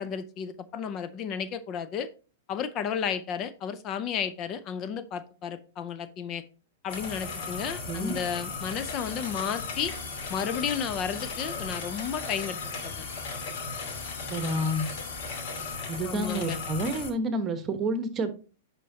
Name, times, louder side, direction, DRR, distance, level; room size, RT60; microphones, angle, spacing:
voice 1, 0.0-2.1 2.5-6.4 6.8-9.9 10.3-12.6 12.8-13.1 16.0-16.6, left 7 dB, 35° left, 0.5 m, -33 dB
sound 1, 6.9-17.1, left 4 dB, 50° left, 2.6 m, -36 dB
voice 2, 7.9-8.2 14.3-14.9 15.9-18.3, right 1 dB, 25° right, 1.1 m, -29 dB
sound 2, 8.7-16.3, left 6 dB, 75° left, 1.2 m, -46 dB
10.0 x 4.4 x 2.8 m
hypercardioid pair, 125°, 0 cm